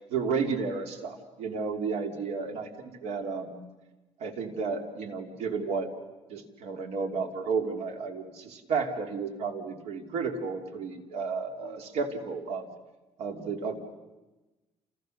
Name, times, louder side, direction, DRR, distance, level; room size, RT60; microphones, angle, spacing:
voice 1, 0.1-3.6 4.2-5.9 6.3-12.7 13.2-13.8, right 5 dB, 75° right, 5 dB, 3.0 m, -32 dB
29.5 x 28.5 x 6.6 m, 1.1 s
cardioid pair, 155°, 11 cm